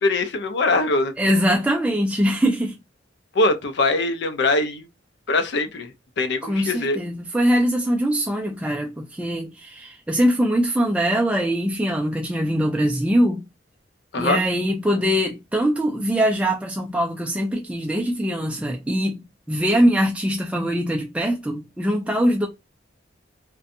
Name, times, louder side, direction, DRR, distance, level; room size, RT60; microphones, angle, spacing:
voice 1, 0.0-1.1 3.3-4.9 5.3-5.9 6.2-7.0 14.1-14.4, left 2 dB, 65° left, 0.5 m, -22 dB
voice 2, 1.2-2.8 6.4-13.4 14.2-22.5, equal, 5° right, 0.3 m, -22 dB
2.6 x 2.2 x 2.5 m
head